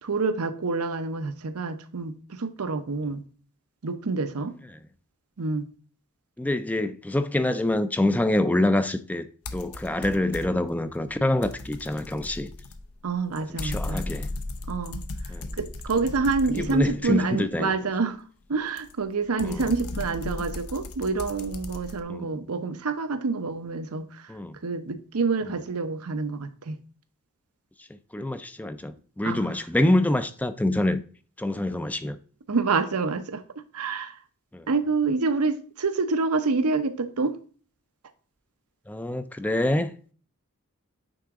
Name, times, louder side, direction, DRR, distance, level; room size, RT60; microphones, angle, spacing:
voice 1, 0.0-3.2 3.8-4.6 5.4-5.7 13.0-14.0 14.7-15.1 15.6-18.2 18.5-24.3 24.6-26.8 29.2-29.6 32.5-33.4 33.7-34.2 34.7-37.4, right 4 dB, 80° right, 0.7 m, -27 dB
voice 2, 6.4-9.3 9.5-12.5 13.6-14.3 15.3-15.5 16.6-17.7 19.4-19.7 22.1-22.4 24.3-24.6 27.8-27.9 28.1-31.0 31.4-32.2 34.5-34.7 38.9-39.9, left 1 dB, 5° left, 0.3 m, -26 dB
sound 1, 9.5-10.7 11.1-17.3 18.8-22.0, left 2 dB, 75° left, 0.7 m, -36 dB
9.1 x 3.8 x 3.6 m
head